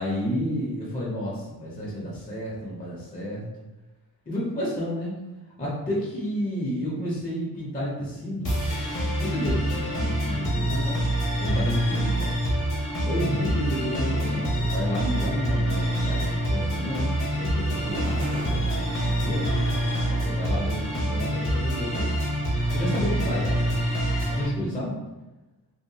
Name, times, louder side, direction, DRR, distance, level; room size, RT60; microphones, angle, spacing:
voice 1, 0.0-3.4 4.3-5.1 5.6-8.6 9.2-11.0 11.4-12.3 13.0-19.5 20.2-22.3 22.7-23.8 24.3-25.0, equal, 20° left, -7 dB, 0.5 m, -31 dB
sound 1, 8.4-24.4, equal, 55° left, 0.8 m, -26 dB
Toilet flush, 17.4-20.5, right 2 dB, 20° right, 0.6 m, -39 dB
2.7 x 2.2 x 2.7 m, 1.1 s
wide cardioid pair, 165°, 38 cm